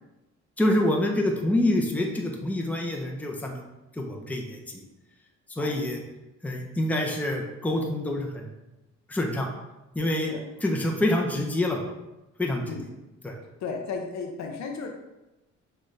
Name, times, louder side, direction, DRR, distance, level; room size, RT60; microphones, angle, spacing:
voice 1, 0.6-3.6 4.0-4.8 5.6-6.0 6.4-8.5 9.1-9.5 9.9-10.3 10.6-11.8 12.4-12.7 13.2-13.4, left 1 dB, 5° left, 1 dB, 0.7 m, -26 dB
voice 2, 13.6-14.9, left 5 dB, 65° left, 3 dB, 0.6 m, -34 dB
6.3 x 2.5 x 3.2 m, 1.0 s
cardioid pair, 90°, 30 cm